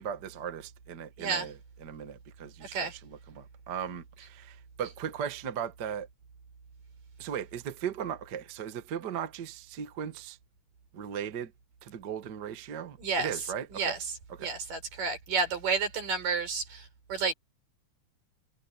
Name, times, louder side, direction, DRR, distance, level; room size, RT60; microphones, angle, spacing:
voice 1, 0.0-6.1 7.2-10.4 10.9-11.5 11.8-14.0 14.3-14.5, right 8 dB, 45° right, 1.6 m, -37 dB
voice 2, 13.0-13.3 13.7-14.0 14.4-17.3, right 4 dB, 85° right, 6.1 m, -30 dB
omnidirectional pair, 3.8 m